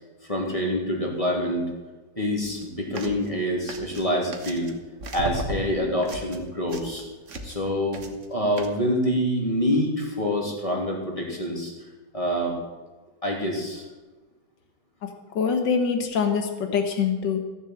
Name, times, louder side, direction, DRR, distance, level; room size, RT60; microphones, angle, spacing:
voice 1, 0.2-1.6 2.2-4.7 5.1-7.0 7.4-11.7 12.1-12.6 13.2-13.8 16.4-16.5, equal, 20° left, -1 dB, 2.9 m, -26 dB
sound 1, 2.4-2.6 2.9-3.3 3.7-4.8 5.0-7.7 7.9-8.3 8.6-8.7, right 2 dB, 45° right, 1.5 m, -35 dB
voice 2, 15.0-17.4, left 6 dB, 90° left, 6 dB, 2.0 m, -24 dB
15.0 x 7.2 x 7.4 m, 1.3 s
omnidirectional pair, 1.9 m